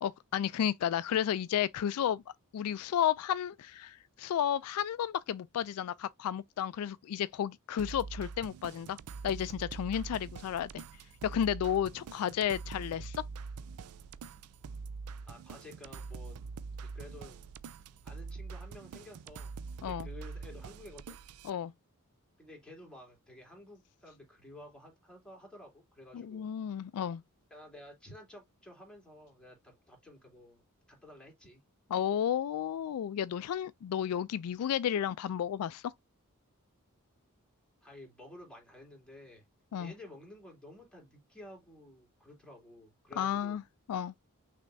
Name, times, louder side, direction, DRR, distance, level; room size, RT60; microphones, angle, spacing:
voice 1, 0.0-2.2 2.5-9.0 9.2-10.8 11.2-13.2 19.8-20.1 21.4-21.7 26.1-27.2 31.9-35.9 39.7-39.9 43.2-43.6 43.9-44.1, left 9 dB, 75° left, 0.3 m, -32 dB
sound 1, 7.8-21.5, right 4 dB, 75° right, 0.4 m, -44 dB
voice 2, 15.3-16.4 16.8-17.4 18.0-21.2 22.4-26.5 27.5-30.6 30.9-31.6 37.8-39.4 39.8-43.6, left 1 dB, 5° left, 2.6 m, -52 dB
6.1 x 3.3 x 2.6 m
head